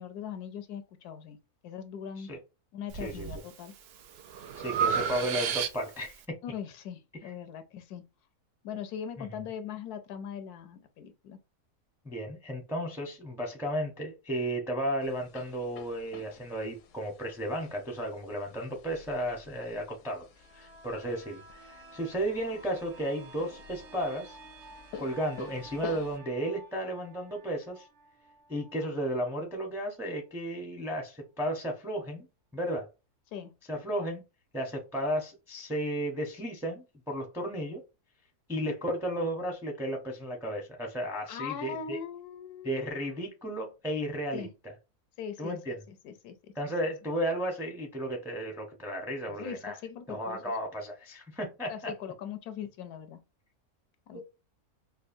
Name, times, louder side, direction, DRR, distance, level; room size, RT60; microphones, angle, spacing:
voice 1, 0.0-1.4 1.6-2.3 2.7-3.7 6.4-8.0 8.6-11.4 33.3-33.5 41.3-43.0 44.3-44.5 45.2-46.5 49.3-50.4 51.7-53.2 54.1-54.2, left 8 dB, 85° left, 1.1 m, -40 dB
Breathing, 2.9-3.4 3.9-6.1, right 7 dB, 85° right, 0.5 m, -31 dB
voice 2, 4.6-6.1 9.2-9.3 12.0-20.3 20.5-24.4 25.0-27.9 28.5-32.2 32.5-32.9 33.7-34.2 34.5-37.8 38.5-42.0 42.6-44.5 45.4-45.7 46.5-49.8 50.1-51.9 54.1-54.2, right 1 dB, 5° right, 0.5 m, -34 dB
sound 1, 15.0-26.2, left 7 dB, 70° left, 0.8 m, -49 dB
sound 2, 20.3-29.9 30.3-30.4, right 3 dB, 55° right, 0.9 m, -53 dB
5.3 x 2.2 x 2.6 m
omnidirectional pair, 1.6 m